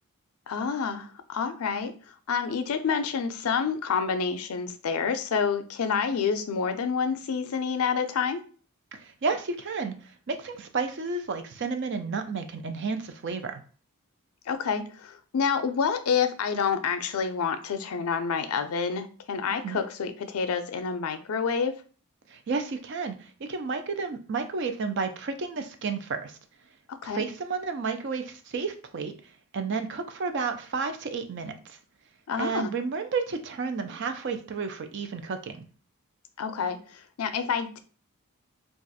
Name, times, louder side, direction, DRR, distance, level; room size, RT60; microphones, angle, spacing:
voice 1, 0.5-1.9 2.3-8.4 14.5-21.7 26.9-27.2 32.3-32.7 36.4-37.8, left 6 dB, 80° left, 9 dB, 0.4 m, -28 dB
voice 2, 8.9-13.6 19.6-19.8 22.3-26.4 27.0-29.1 29.5-31.8 32.4-35.6, right 4 dB, 55° right, 7 dB, 0.4 m, -31 dB
2.4 x 2.3 x 4.0 m, 0.40 s
head